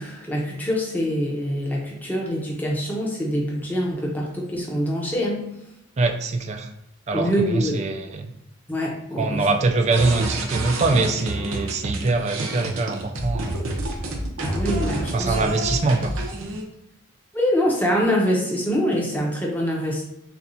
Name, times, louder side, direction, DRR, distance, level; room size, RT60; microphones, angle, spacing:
voice 1, 0.0-5.4 7.1-7.8 8.7-9.5 14.4-15.4 17.3-20.0, equal, 10° left, -2 dB, 0.7 m, -24 dB
voice 2, 6.0-6.7 7.1-8.3 9.2-13.7 15.1-16.1, right 3 dB, 30° right, 5 dB, 0.3 m, -23 dB
sound 1, 9.9-16.6, right 1 dB, 75° right, 0.8 m, -28 dB
6.7 x 2.3 x 2.7 m, 0.83 s
head